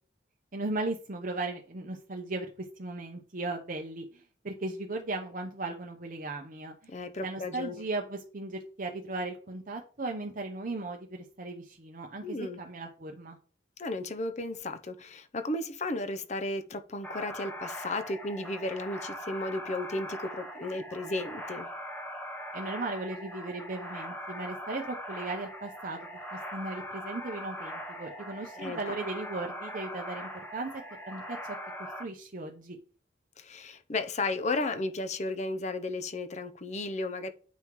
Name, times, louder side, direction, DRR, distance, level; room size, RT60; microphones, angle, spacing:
voice 1, 0.5-6.9 7.2-13.4 22.5-26.0 26.3-30.7 31.1-31.4 31.8-32.8, right 2 dB, 45° right, 0.8 m, -37 dB
voice 2, 6.9-7.8 12.2-12.6 13.8-21.7 28.6-28.9 33.4-37.3, left 2 dB, 40° left, 0.6 m, -34 dB
sound 1, 17.0-32.0, equal, 10° left, 0.9 m, -41 dB
9.3 x 5.6 x 3.1 m
head